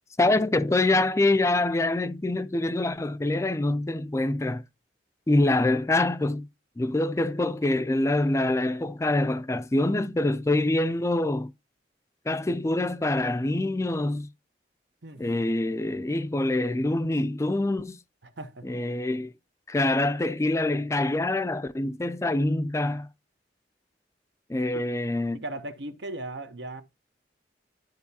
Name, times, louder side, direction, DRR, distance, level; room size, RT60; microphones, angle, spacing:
voice 1, 0.2-4.6 5.3-6.5 6.8-11.5 12.3-14.3 15.2-18.0 18.6-19.3 19.7-23.1 24.5-25.4, left 2 dB, 15° left, 0.4 m, -25 dB
voice 2, 18.2-18.7 25.3-26.8, right 2 dB, 80° right, 1.0 m, -37 dB
12.0 x 4.6 x 2.8 m
head